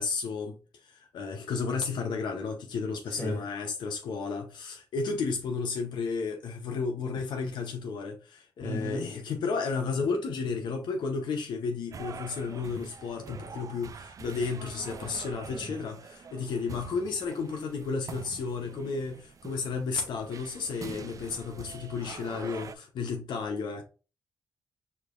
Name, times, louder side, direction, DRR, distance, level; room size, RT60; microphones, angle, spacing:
voice 1, 0.0-23.8, left 4 dB, 85° left, 0.7 m, -33 dB
voice 2, 8.6-9.1 15.5-15.8, equal, 30° left, 1.8 m, -34 dB
sound 1, 11.9-22.8, right 6 dB, 50° right, 0.4 m, -45 dB
4.8 x 3.3 x 2.4 m
cardioid pair, 90°, 8 cm